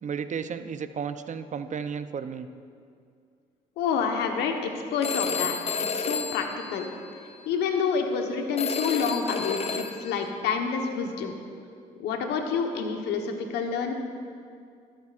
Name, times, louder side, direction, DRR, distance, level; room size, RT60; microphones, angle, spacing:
voice 1, 0.0-2.5, right 6 dB, 45° right, 10 dB, 0.6 m, -33 dB
voice 2, 3.8-6.9 7.5-11.3 12.0-13.9, left 5 dB, 80° left, 4 dB, 1.1 m, -28 dB
Telephone, 5.0-7.4 8.6-10.3, left 5 dB, 35° left, 0.8 m, -31 dB
20.0 x 8.8 x 2.5 m, 2.3 s
supercardioid pair, 55°, 17 cm